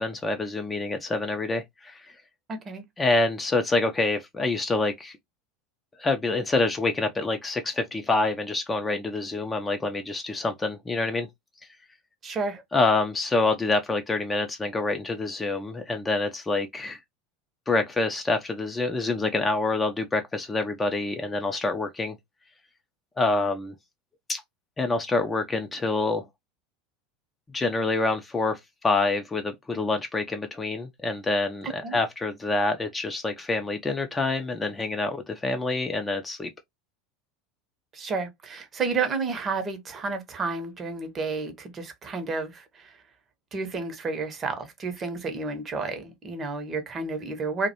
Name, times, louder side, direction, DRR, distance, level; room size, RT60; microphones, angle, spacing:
voice 1, 0.0-2.2 3.0-5.2 6.0-11.3 12.7-17.0 17.7-22.2 23.2-23.7 24.3-24.4 24.8-26.2 27.5-36.5, left 3 dB, 15° left, 0.4 m, -26 dB
voice 2, 2.5-2.8 12.2-12.6 31.6-32.0 37.9-43.0 43.5-47.7, right 4 dB, 30° right, 0.6 m, -31 dB
2.3 x 2.1 x 2.8 m
figure-of-eight pair, 75°, 0 cm